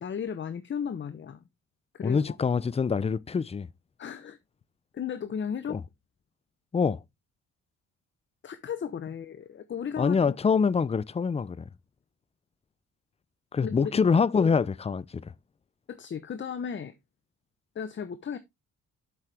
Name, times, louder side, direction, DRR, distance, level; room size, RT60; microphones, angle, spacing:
voice 1, 0.0-1.4 1.9-2.4 4.0-4.4 4.9-5.8 8.4-10.4 13.6-13.9 15.9-16.9 17.7-18.4, left 7 dB, 40° left, 0.9 m, -35 dB
voice 2, 2.0-3.7 5.7-5.8 6.7-7.0 10.0-11.6 13.5-15.3, left 5 dB, 20° left, 0.5 m, -25 dB
7.9 x 7.3 x 3.4 m
cardioid pair, 90°, 30 cm